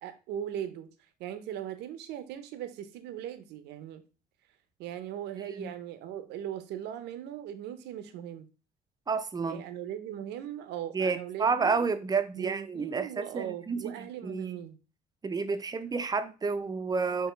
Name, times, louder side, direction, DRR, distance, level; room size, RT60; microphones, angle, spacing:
voice 1, 0.0-0.9 1.2-4.0 4.8-8.5 9.5-11.7 12.3-14.8, right 10 dB, 85° right, 0.7 m, -39 dB
voice 2, 9.1-9.6 10.9-13.9 14.2-14.6 15.2-17.3, right 4 dB, 25° right, 0.5 m, -30 dB
5.6 x 2.9 x 3.0 m
cardioid pair, 110°, 17 cm